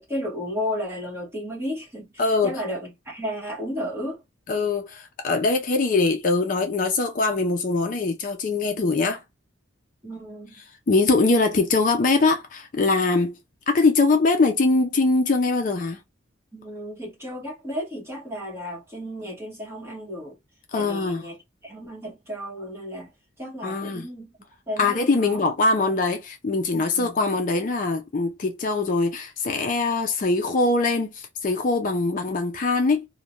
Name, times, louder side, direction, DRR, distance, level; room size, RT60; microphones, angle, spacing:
voice 1, 0.0-4.2 10.0-10.6 16.5-20.4 20.7-21.4 21.6-23.1 23.4-24.3 24.7-25.5 25.7-25.8 26.7-27.2, equal, 10° right, 1.0 m, -33 dB
voice 2, 2.2-2.6 4.5-9.2 10.9-13.4 13.7-16.0 20.7-21.2 23.6-24.1 24.8-33.1, left 3 dB, 40° left, 0.4 m, -22 dB
2.5 x 2.1 x 3.0 m
head